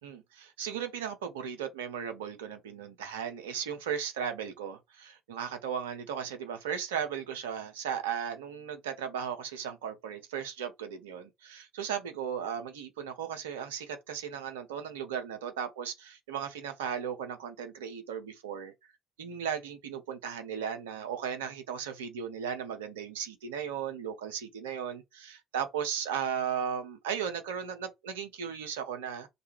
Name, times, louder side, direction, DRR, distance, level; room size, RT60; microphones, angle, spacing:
voice 1, 0.0-18.7 19.2-29.3, right 8 dB, 70° right, 0.5 m, -36 dB
2.3 x 2.2 x 3.0 m
figure-of-eight pair, 55°, 0 cm